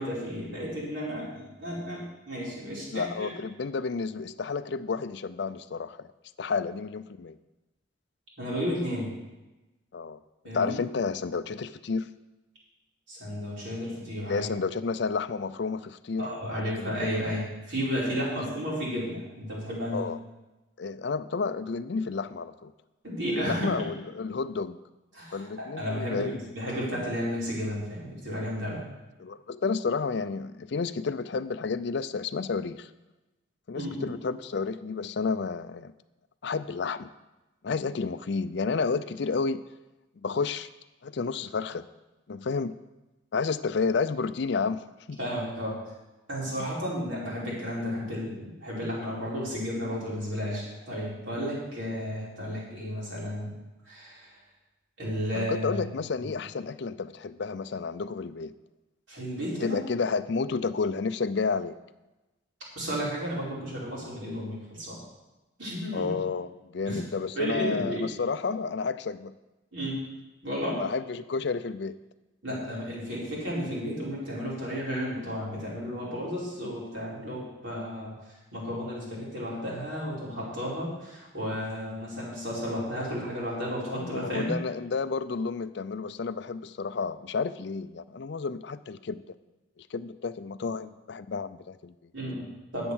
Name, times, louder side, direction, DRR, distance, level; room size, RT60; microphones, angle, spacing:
voice 1, 0.0-3.3 8.4-9.1 10.4-10.7 13.1-14.4 16.2-20.1 23.0-23.8 25.1-28.8 33.7-34.1 45.2-45.8 46.3-53.5 53.8-54.3 55.0-55.9 59.1-59.8 62.7-65.0 65.6-66.1 66.9-67.0 67.3-68.1 69.7-70.0 70.4-70.8 72.4-78.1 78.5-84.5 92.1-92.9, equal, 65° right, -6 dB, 4.8 m, -33 dB
voice 2, 2.9-6.1 6.4-7.4 9.9-10.2 10.5-12.1 14.2-16.3 16.6-17.1 19.9-20.2 20.8-22.7 23.5-24.8 25.3-26.4 29.2-32.9 33.7-35.9 36.4-37.1 37.6-39.6 40.2-40.7 41.0-41.9 42.3-42.8 43.3-45.2 55.3-58.5 59.6-61.8 65.9-69.3 70.8-72.0 83.9-89.2 89.8-91.9, left 4 dB, 55° left, 13 dB, 0.4 m, -31 dB
11.0 x 8.1 x 6.3 m, 1.0 s
head